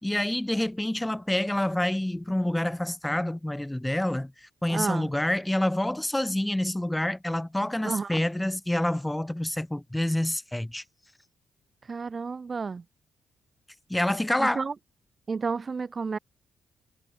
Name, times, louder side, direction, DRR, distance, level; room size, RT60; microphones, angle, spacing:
voice 1, 0.0-10.8 13.9-14.6, left 1 dB, 10° left, 1.4 m, -27 dB
voice 2, 4.7-5.1 7.8-8.2 11.9-12.8 14.4-14.7 15.3-16.2, right 5 dB, 40° right, 1.1 m, -31 dB
hypercardioid pair, 40°, 0 cm